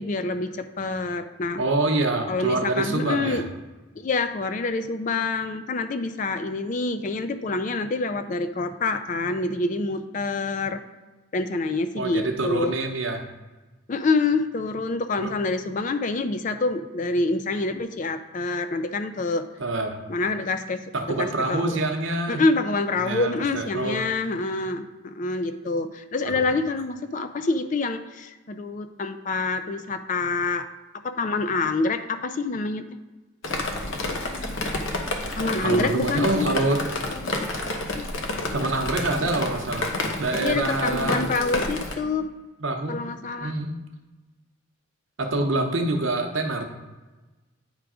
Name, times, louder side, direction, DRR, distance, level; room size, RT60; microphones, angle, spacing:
voice 1, 0.0-1.6 2.3-3.5 4.0-10.8 11.3-12.7 13.9-19.5 20.1-20.8 21.2-21.8 22.3-30.7 31.0-32.9 35.4-36.5 40.4-42.3 42.9-43.5, left 3 dB, 35° left, 10 dB, 0.3 m, -26 dB
voice 2, 1.6-3.4 12.0-13.2 15.2-15.3 19.6-20.0 20.9-22.4 23.0-24.0 35.4-36.8 38.5-41.3 42.6-43.1 43.4-43.7 45.2-46.7, right 2 dB, 65° right, 3 dB, 0.8 m, -26 dB
Drip, 33.4-42.0, left 2 dB, 65° left, 0.8 m, -30 dB
8.9 x 3.5 x 4.9 m, 1.2 s
head